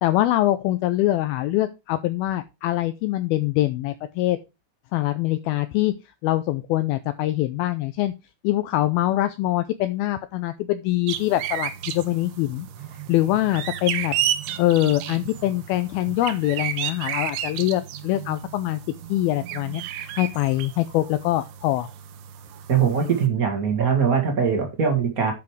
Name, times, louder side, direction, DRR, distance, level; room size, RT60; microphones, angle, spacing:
voice 1, 0.0-4.4 4.9-6.0 6.2-8.1 8.4-12.7 13.1-14.2 14.6-18.8 19.1-19.8 20.2-21.9, left 15 dB, 80° left, 11 dB, 2.2 m, -23 dB
sound 1, 11.1-23.3, right 10 dB, 75° right, 2.8 m, -32 dB
voice 2, 22.7-25.3, right 6 dB, 55° right, 3 dB, 0.9 m, -21 dB
10.5 x 4.9 x 4.8 m, 0.26 s
omnidirectional pair, 4.8 m